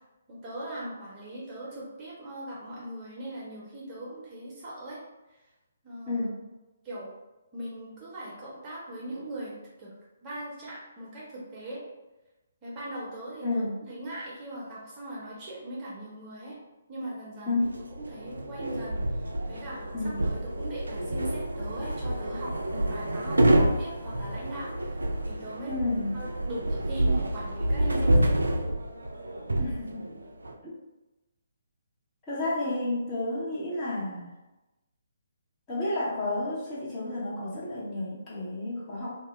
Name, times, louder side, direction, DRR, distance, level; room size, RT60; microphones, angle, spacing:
voice 1, 0.3-5.0 5.8-6.3 6.8-7.1 7.5-9.9 10.2-11.8 12.6-16.6 16.9-17.6 17.9-25.8 26.1-28.4, right 1 dB, 25° right, -7 dB, 0.8 m, -40 dB
voice 2, 6.1-6.4 13.4-13.8 17.5-17.7 19.9-20.3 25.7-26.1 29.6-30.1 30.6-30.8 32.3-34.3 35.7-39.1, left 2 dB, 20° left, -9 dB, 0.8 m, -31 dB
sound 1, 17.6-30.5, right 1 dB, 75° right, 0.3 m, -28 dB
2.2 x 2.1 x 3.1 m, 1.0 s
figure-of-eight pair, 135°, 0 cm